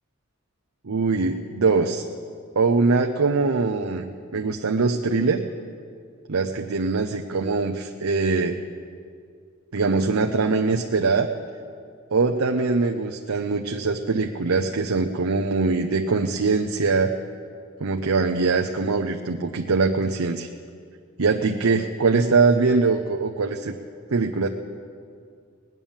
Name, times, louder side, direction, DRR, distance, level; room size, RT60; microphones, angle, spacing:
voice 1, 0.8-2.0 2.6-5.4 6.3-8.5 9.7-11.3 12.1-17.1 17.8-20.5 21.2-23.8 24.1-24.5, right 4 dB, 85° right, 4 dB, 0.7 m, -22 dB
19.5 x 9.2 x 7.3 m, 2.2 s
head